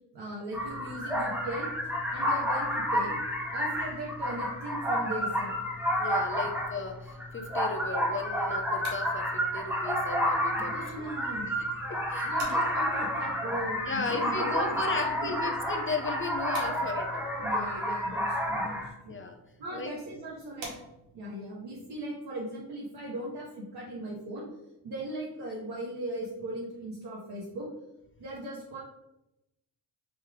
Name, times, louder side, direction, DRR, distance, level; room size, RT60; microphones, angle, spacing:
voice 1, 0.1-1.7 2.1-3.2 3.5-5.5 10.5-11.5 12.2-15.5 17.4-19.1 19.6-20.7 21.1-24.4 24.8-27.7 28.2-28.8, right 1 dB, 65° right, -5 dB, 1.3 m, -38 dB
sound 1, 0.5-18.9, equal, 5° right, 1.2 m, -30 dB
voice 2, 6.0-9.3 9.5-10.8 11.9-12.6 13.9-17.3 19.1-19.4 19.7-19.9, left 4 dB, 30° left, 5 dB, 0.5 m, -35 dB
sound 2, 8.4-21.3, right 3 dB, 85° right, 1.4 m, -51 dB
4.2 x 3.2 x 3.6 m, 0.90 s
supercardioid pair, 65°, 43 cm